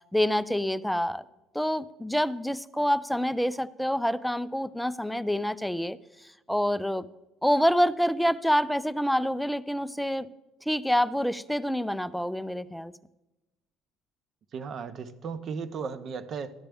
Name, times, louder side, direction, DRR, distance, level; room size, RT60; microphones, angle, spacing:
voice 1, 0.1-1.2 1.5-6.0 6.5-7.1 7.4-10.3 10.7-12.9, equal, ahead, 15 dB, 0.3 m, -27 dB
voice 2, 14.5-16.5, right 5 dB, 45° right, 12 dB, 0.7 m, -35 dB
13.5 x 10.0 x 3.5 m, 1.0 s
cardioid pair, 125°, 0 cm